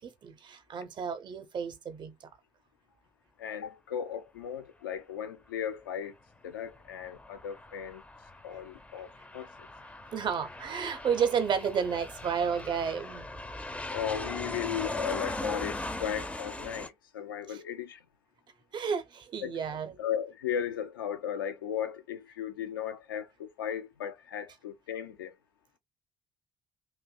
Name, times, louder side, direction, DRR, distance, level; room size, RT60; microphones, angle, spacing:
voice 1, 0.0-2.1 10.1-13.3 17.5-17.6 18.7-20.0, right 7 dB, 40° right, 0.6 m, -31 dB
voice 2, 3.4-6.1 6.4-8.0 8.4-9.5 13.9-18.0 19.4-19.6 20.0-25.3, left 9 dB, 80° left, 0.4 m, -36 dB
Aircraft, 6.7-16.9, left 2 dB, 10° left, 0.4 m, -40 dB
2.6 x 2.1 x 2.3 m
figure-of-eight pair, 45°, 11 cm